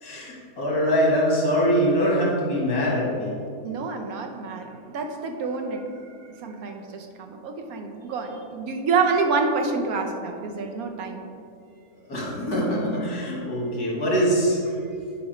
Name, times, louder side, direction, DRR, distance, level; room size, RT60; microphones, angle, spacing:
voice 1, 0.0-3.4 12.1-14.6, equal, 75° left, -5 dB, 2.4 m, -23 dB
voice 2, 3.6-6.1 6.4-11.2, right 4 dB, 75° right, 4 dB, 1.2 m, -27 dB
9.5 x 5.3 x 3.1 m, 2.5 s
omnidirectional pair, 1.6 m